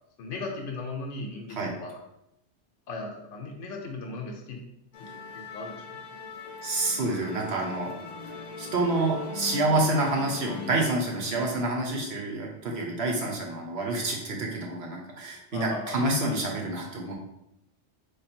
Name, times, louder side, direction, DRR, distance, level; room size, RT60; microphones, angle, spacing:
voice 1, 0.2-2.0 2.9-4.6 5.0-5.1 5.5-6.0 11.2-11.6 15.5-16.1, left 3 dB, 85° left, 0 dB, 0.9 m, -37 dB
Musical instrument, 4.9-11.0, left 4 dB, 70° left, 0.4 m, -40 dB
voice 2, 6.6-7.9 8.6-17.1, right 2 dB, 65° right, 0 dB, 0.8 m, -28 dB
3.3 x 2.1 x 4.3 m, 0.84 s
omnidirectional pair, 1.2 m